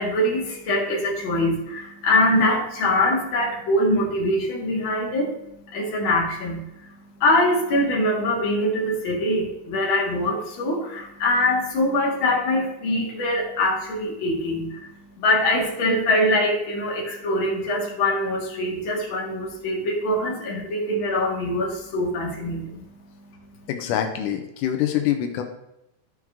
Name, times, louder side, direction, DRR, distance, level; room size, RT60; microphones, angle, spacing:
voice 1, 0.0-23.7, left 1 dB, 45° left, -2 dB, 2.3 m, -23 dB
voice 2, 23.7-25.4, left 10 dB, 85° left, 5 dB, 2.3 m, -25 dB
13.0 x 4.7 x 3.6 m, 0.86 s
omnidirectional pair, 3.6 m